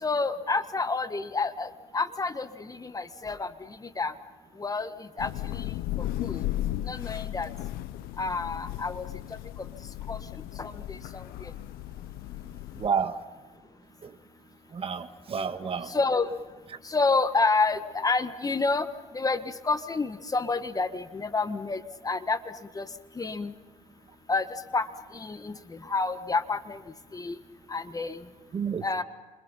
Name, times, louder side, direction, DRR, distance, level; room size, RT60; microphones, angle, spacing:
voice 1, 0.0-3.5 3.8-4.1 4.6-5.7 6.0-6.4 6.8-7.5 8.2-9.0 10.1-10.2 10.6-11.5 15.9-16.3 16.8-18.9 19.1-22.4 22.7-22.8 23.1-23.5 24.3-24.5 24.7-26.8 27.1-27.3 27.7-28.2 28.8-29.0, left 3 dB, 25° left, 10 dB, 1.6 m, -29 dB
Thunder / Rain, 5.2-12.9, left 14 dB, 80° left, 0.9 m, -35 dB
voice 2, 12.8-13.2 14.0-14.2 14.7-15.9 28.5-28.8, right 6 dB, 40° right, 9 dB, 1.6 m, -30 dB
28.5 x 26.0 x 5.7 m, 1.3 s
supercardioid pair, 85°, 15 cm